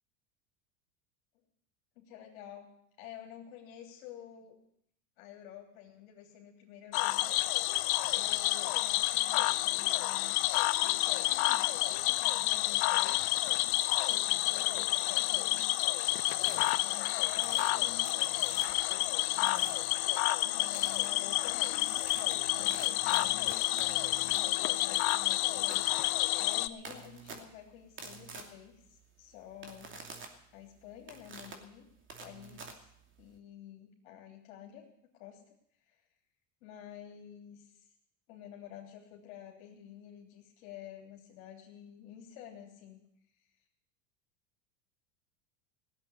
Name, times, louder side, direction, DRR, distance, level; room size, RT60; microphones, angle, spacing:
voice 1, 1.9-2.7 3.0-4.6 5.2-10.4 10.7-13.4 14.0-15.7 16.8-18.7 19.1-20.2 20.6-23.6 24.1-25.8 26.3-28.8 29.2-30.0 30.5-31.9 32.2-32.7 33.2-34.9 35.1-35.4 35.9-36.0 36.6-37.9 38.3-43.1, left 9 dB, 75° left, 0 dB, 3.2 m, -50 dB
Cricket / Frog, 6.9-26.7, left 17 dB, 60° left, 0.8 m, -29 dB
sound 1, 16.3-16.7 17.4-18.9 19.5-19.9 20.7-21.0 21.5-33.4, right 4 dB, 30° right, 2.7 m, -49 dB
16.5 x 7.9 x 9.9 m, 0.71 s
supercardioid pair, 125°, 41 cm